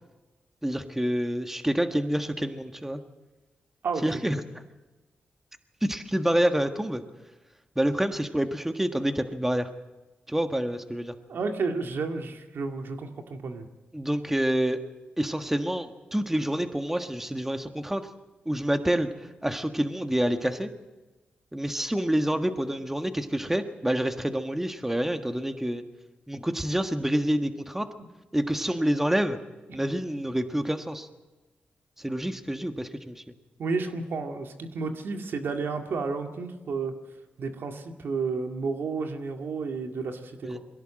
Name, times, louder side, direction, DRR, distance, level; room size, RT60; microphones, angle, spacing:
voice 1, 0.6-3.0 4.0-4.4 5.8-7.0 7.7-9.7 10.3-11.1 13.9-14.8 15.2-18.1 18.4-20.7 21.5-25.8 26.3-27.9 28.3-29.4 29.7-31.1 32.0-33.2 40.4-40.6, right 1 dB, 10° right, 7 dB, 1.5 m, -27 dB
voice 2, 11.3-13.7 33.6-36.9 37.4-40.6, right 4 dB, 75° right, 5 dB, 2.1 m, -31 dB
22.5 x 16.5 x 7.7 m, 1.2 s
cardioid pair, 65°, 4 cm